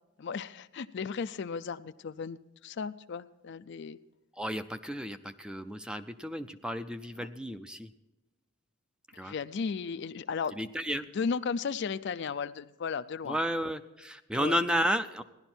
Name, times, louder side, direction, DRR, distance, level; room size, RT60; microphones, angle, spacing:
voice 1, 0.2-2.4 2.6-4.0 7.2-7.3 9.2-10.7 11.1-13.4 14.3-14.6, left 5 dB, 55° left, 13 dB, 0.4 m, -35 dB
voice 2, 4.4-7.9 9.2-9.3 10.6-11.1 13.3-15.2, equal, 5° right, 9 dB, 0.4 m, -32 dB
16.5 x 11.5 x 4.4 m, 1.0 s
head